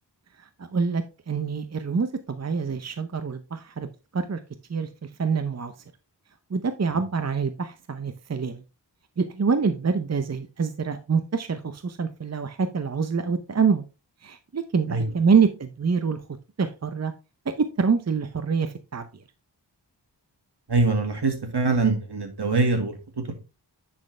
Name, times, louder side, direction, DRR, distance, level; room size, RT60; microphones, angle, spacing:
voice 1, 0.4-3.9 4.1-4.4 4.7-5.7 6.5-8.6 9.2-13.8 14.2-16.2 16.6-17.1 17.5-19.1, right 5 dB, 40° right, 0.7 m, -26 dB
voice 2, 20.7-23.3, right 3 dB, 70° right, 1.8 m, -24 dB
9.8 x 4.3 x 3.2 m
wide cardioid pair, 45°, 42 cm